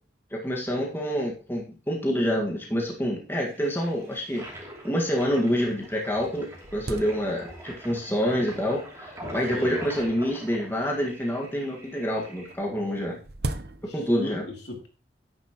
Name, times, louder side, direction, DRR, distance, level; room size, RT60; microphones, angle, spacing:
voice 1, 0.3-4.5 4.8-13.2 13.9-14.4, equal, 10° left, -1 dB, 1.7 m, -27 dB
Toilet flush, 3.4-12.5, equal, 15° right, 2.8 m, -44 dB
sound 1, 3.7-3.8 4.0-4.1 4.8-4.9 5.5-5.6 6.0-7.8 8.5-8.9 9.9-11.2 12.5-14.3, right 2 dB, 55° right, 0.7 m, -38 dB
voice 2, 9.2-9.8 13.9-14.9, left 2 dB, 70° left, 1 dB, 2.7 m, -37 dB
9.8 x 9.7 x 3.0 m, 0.35 s
head